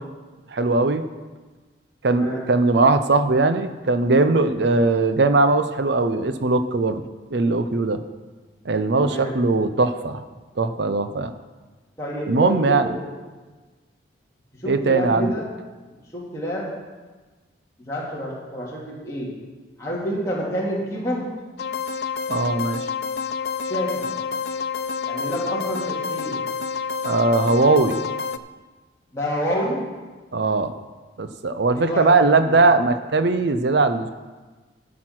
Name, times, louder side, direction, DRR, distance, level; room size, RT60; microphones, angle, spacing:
voice 1, 0.5-1.0 2.0-7.0 7.3-8.0 8.7-10.2 10.6-11.3 12.3-12.9 14.6-15.3 22.3-22.8 27.0-28.0 30.3-30.7 31.2-34.1, right 3 dB, 65° right, 10 dB, 0.6 m, -20 dB
voice 2, 2.1-2.5 9.0-9.4 12.0-13.0 14.5-15.5 16.1-16.7 17.8-19.3 19.8-21.3 23.6-24.1 25.0-26.4 29.1-29.8 31.7-32.6, equal, 15° left, -6 dB, 2.6 m, -28 dB
sound 1, 21.6-28.4, left 5 dB, 55° left, 0.4 m, -28 dB
12.0 x 6.2 x 6.0 m, 1.3 s
head